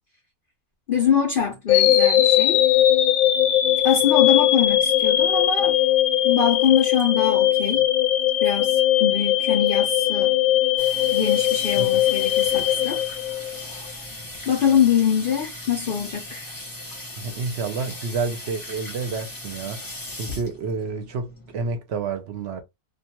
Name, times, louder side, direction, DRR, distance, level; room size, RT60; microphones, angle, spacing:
voice 1, 0.9-2.6 3.8-5.8 6.2-7.9 8.4-10.4 11.1-13.0 14.5-16.5, left 8 dB, 60° left, 0.5 m, -23 dB
sound 1, 1.7-13.8, left 12 dB, 85° left, 1.1 m, -20 dB
Water tap faucet / Sink (filling or washing), 10.8-21.7, left 1 dB, 20° left, 0.6 m, -38 dB
voice 2, 17.2-22.6, right 4 dB, 60° right, 0.7 m, -29 dB
2.3 x 2.3 x 2.8 m
omnidirectional pair, 1.5 m